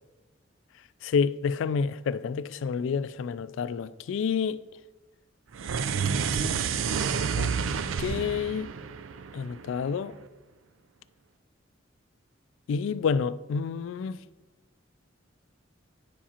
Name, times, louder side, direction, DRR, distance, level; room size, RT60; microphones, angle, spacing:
voice 1, 1.0-4.6 7.4-7.5 8.0-8.7 9.3-10.1 12.7-14.2, left 6 dB, 70° left, 0.3 m, -29 dB
sound 1, 5.5-9.9, right 6 dB, 85° right, 0.4 m, -29 dB
9.6 x 7.2 x 2.9 m
head